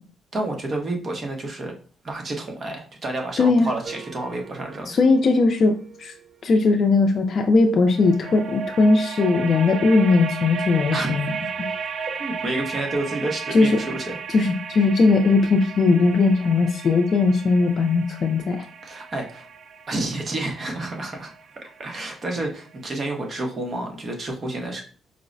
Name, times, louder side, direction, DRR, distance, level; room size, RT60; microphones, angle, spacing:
voice 1, 0.3-1.7 2.0-4.9 10.9-11.1 12.2-14.2 18.8-19.5 19.9-21.3 21.6-24.8, right 2 dB, 40° right, 2 dB, 0.9 m, -29 dB
voice 2, 3.4-3.7 4.9-6.1 6.4-11.3 13.5-13.8 14.3-18.7, left 3 dB, 50° left, 3 dB, 0.4 m, -19 dB
sound 1, 3.8-7.1 7.9-22.8, right 6 dB, 60° right, 0.4 m, -35 dB
4.6 x 2.0 x 2.6 m, 0.41 s
cardioid pair, 90°, 0 cm